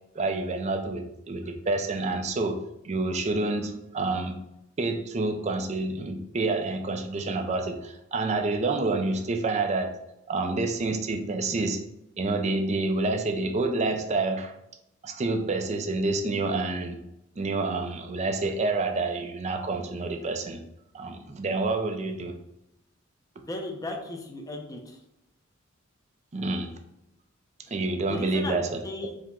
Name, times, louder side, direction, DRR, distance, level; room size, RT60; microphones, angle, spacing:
voice 1, 0.1-4.4 4.8-10.0 10.3-11.8 12.2-14.5 15.0-17.0 17.4-20.6 20.9-22.3 26.3-26.7 27.7-28.8, right 3 dB, 35° right, 6 dB, 0.4 m, -28 dB
voice 2, 23.4-25.0 28.1-29.2, left 2 dB, 15° left, 2 dB, 0.6 m, -36 dB
4.7 x 2.1 x 3.6 m, 0.83 s
head